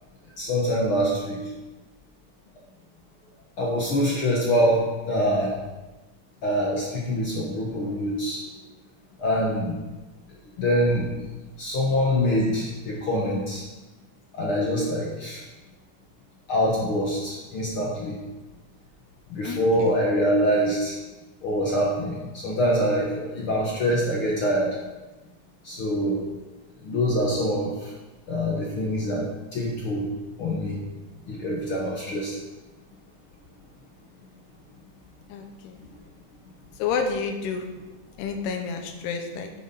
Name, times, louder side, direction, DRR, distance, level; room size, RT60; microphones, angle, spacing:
voice 1, 0.4-1.4 3.6-5.5 6.4-8.4 9.2-9.8 10.6-11.1 11.6-13.6 14.4-15.4 16.5-18.2 19.3-20.9 21.4-22.2 22.4-24.7 25.6-26.2 26.8-27.7 28.3-29.2 29.5-30.1 30.4-30.8 31.3-32.3, equal, 65° left, -3 dB, 1.3 m, -24 dB
voice 2, 19.4-20.0 35.3-35.8 36.8-37.7 38.2-39.5, left 5 dB, 90° left, 4 dB, 2.9 m, -30 dB
9.5 x 6.5 x 5.7 m, 1.2 s
omnidirectional pair, 4.5 m